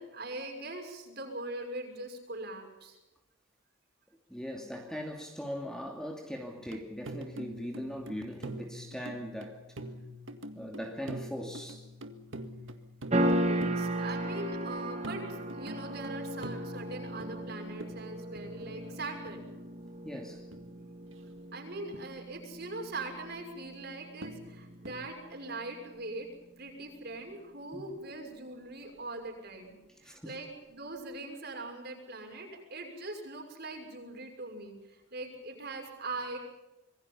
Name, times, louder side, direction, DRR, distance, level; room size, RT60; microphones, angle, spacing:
voice 1, 0.0-3.0 13.4-19.5 21.5-26.3 26.6-36.4, right 2 dB, 50° right, 6.2 m, -41 dB
voice 2, 4.3-9.6 10.6-11.8 20.0-20.4 27.7-27.8 30.0-30.4, equal, 5° left, 2.6 m, -40 dB
sound 1, 6.6-19.9 20.5-21.1 21.9-22.1 24.2-25.0, equal, 65° right, 1.9 m, -45 dB
sound 2, 13.1-25.5, right 1 dB, 35° right, 2.4 m, -36 dB
26.0 x 22.5 x 5.7 m
head